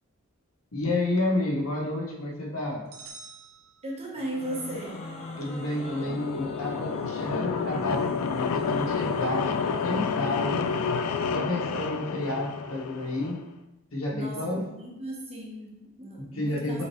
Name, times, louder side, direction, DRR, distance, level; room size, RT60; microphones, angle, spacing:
voice 1, 0.7-2.9 5.4-10.7 11.3-13.4 13.9-14.7 16.3-16.8, left 1 dB, 65° left, -1 dB, 0.9 m, -30 dB
sound 1, 2.9-4.5, right 4 dB, 65° right, 0.6 m, -48 dB
voice 2, 3.8-5.0 14.1-16.8, right 1 dB, 30° right, -2 dB, 0.9 m, -37 dB
sound 2, 4.1-11.5, left 2 dB, 30° left, 0.7 m, -42 dB
sound 3, 5.5-13.4, left 6 dB, 85° left, 0.3 m, -30 dB
5.5 x 3.1 x 3.0 m, 0.95 s
head